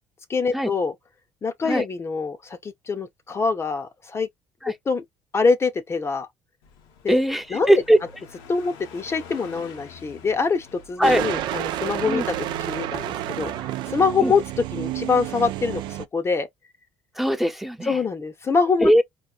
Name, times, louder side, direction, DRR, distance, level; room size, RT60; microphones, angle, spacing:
voice 1, 0.3-0.9 1.4-4.3 4.9-5.0 5.3-6.3 7.0-7.2 7.5-7.7 8.5-13.5 13.9-14.4 14.7-16.5 17.9-18.9, left 4 dB, 30° left, 0.8 m, -24 dB
Car passing by, 6.6-15.1, left 4 dB, 80° left, 1.1 m, -46 dB
voice 2, 7.1-8.0 11.0-11.2 12.1-12.2 14.2-14.3 17.2-18.0 18.8-19.0, equal, 5° right, 0.8 m, -20 dB
sound 1, 11.0-16.1, right 13 dB, 70° right, 0.5 m, -30 dB
4.6 x 2.9 x 2.4 m
supercardioid pair, 75°, 8 cm